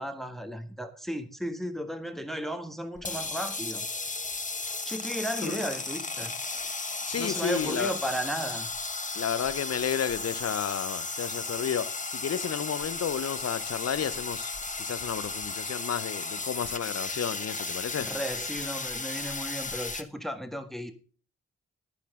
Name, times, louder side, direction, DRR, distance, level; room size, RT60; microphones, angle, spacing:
voice 1, 0.0-3.9 4.8-6.3 7.2-8.7 18.0-20.9, equal, ahead, 1.5 m, -34 dB
sound 1, 2.9-20.0, left 3 dB, 25° left, 1.3 m, -35 dB
voice 2, 7.1-7.9 9.1-14.5 14.8-18.1, left 8 dB, 55° left, 0.9 m, -32 dB
12.0 x 9.9 x 3.7 m
supercardioid pair, 45°, 29 cm